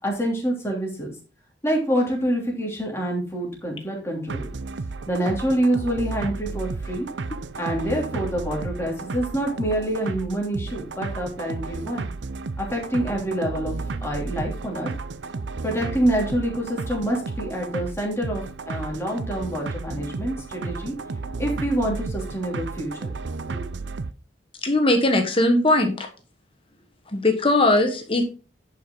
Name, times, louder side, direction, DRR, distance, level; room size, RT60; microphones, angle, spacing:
voice 1, 0.0-1.1 1.6-4.5 5.1-7.1 7.6-12.1 12.6-13.7 14.0-14.9 15.6-20.9 21.4-23.1 23.5-23.7, right 1 dB, 15° left, -1 dB, 2.9 m, -26 dB
sound 1, 4.3-24.1, right 3 dB, 70° right, 0.6 m, -33 dB
voice 2, 24.6-26.1 27.1-28.2, left 2 dB, 30° left, 5 dB, 1.3 m, -20 dB
10.5 x 5.8 x 3.9 m, 0.35 s
head